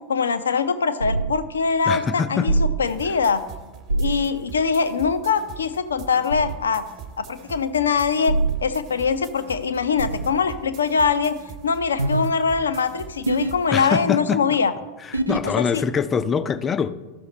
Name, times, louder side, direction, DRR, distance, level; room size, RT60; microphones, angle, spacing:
voice 1, 0.1-3.4 4.0-6.9 7.2-8.3 8.6-11.4 11.6-14.7 15.6-15.9, left 5 dB, 70° left, 0.6 m, -22 dB
sound 1, 1.0-1.4 2.5-2.8 3.9-4.2 6.3-6.6 8.3-8.6 10.0-10.4 12.0-12.3 13.3-13.5 15.1-15.5, right 2 dB, 85° right, 0.4 m, -23 dB
voice 2, 1.9-2.5 13.7-14.4 15.1-16.9, left 6 dB, 20° left, 0.4 m, -24 dB
sound 2, 2.9-13.9, right 7 dB, 35° right, 1.0 m, -42 dB
12.5 x 6.4 x 4.2 m
figure-of-eight pair, 90°, 0 cm